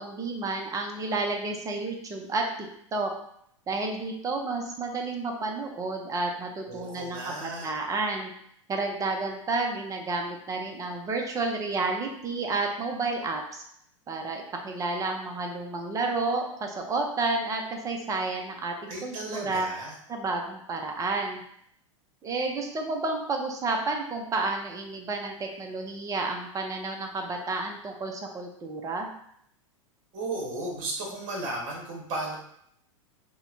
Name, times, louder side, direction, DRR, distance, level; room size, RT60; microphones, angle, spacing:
voice 1, 0.0-2.4 2.9-3.1 3.7-8.3 8.7-13.6 14.1-19.7 20.1-21.4 22.2-29.1, right 3 dB, 20° right, 2 dB, 0.7 m, -31 dB
voice 2, 6.7-7.7 18.9-19.9 30.1-32.4, right 2 dB, 45° right, -1 dB, 1.3 m, -34 dB
5.3 x 2.2 x 2.7 m, 0.71 s
hypercardioid pair, 95°, 17 cm